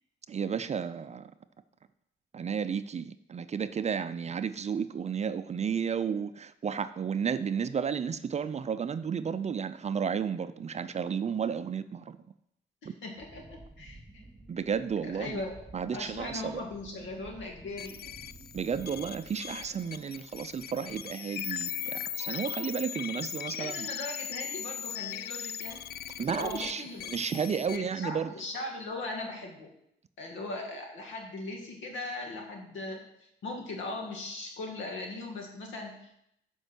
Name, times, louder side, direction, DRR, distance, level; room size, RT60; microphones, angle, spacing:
voice 1, 0.3-1.3 2.3-12.2 12.9-13.0 14.5-15.4 15.7-16.7 18.5-23.9 26.2-26.8 27.1-28.3, right 7 dB, 35° right, 12 dB, 0.5 m, -32 dB
voice 2, 12.8-14.2 15.0-15.6 15.9-18.1 23.5-25.8 26.4-27.1 27.7-29.7 30.2-36.2, left 2 dB, 75° left, 2 dB, 2.1 m, -39 dB
Wind, 13.2-20.0 20.3-20.8, right 2 dB, 15° right, 2.3 m, -53 dB
sound 1, 17.8-27.8, left 9 dB, 50° left, 0.4 m, -39 dB
7.9 x 5.4 x 6.1 m, 0.76 s
cardioid pair, 90°, 20 cm